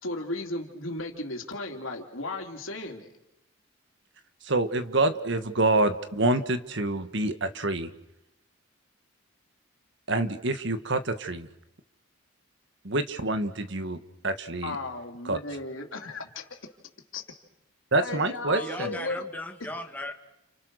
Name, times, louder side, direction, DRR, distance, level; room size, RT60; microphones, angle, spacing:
voice 1, 0.0-3.1 14.6-16.6 17.1-17.2 18.0-19.2, left 2 dB, 75° left, 3 dB, 3.5 m, -35 dB
voice 2, 4.4-7.9 10.1-11.5 12.8-14.0 14.2-14.8 15.3-15.4 17.9-19.0, right 2 dB, 60° right, 10 dB, 1.7 m, -27 dB
voice 3, 18.5-20.1, left 1 dB, 10° left, 3 dB, 2.3 m, -37 dB
30.0 x 29.5 x 6.5 m, 0.84 s
head